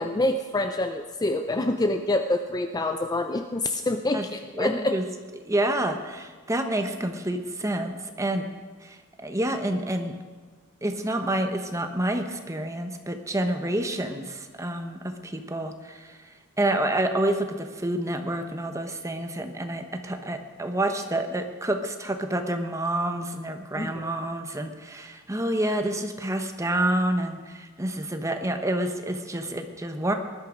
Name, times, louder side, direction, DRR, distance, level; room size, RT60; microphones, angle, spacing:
voice 1, 0.0-5.0 23.8-24.0, left 2 dB, 20° left, 7 dB, 0.5 m, -26 dB
voice 2, 4.5-5.0 5.5-8.5 8.8-10.2 10.8-30.1, right 1 dB, 15° right, 6 dB, 1.1 m, -28 dB
19.0 x 12.0 x 5.2 m, 1.5 s
head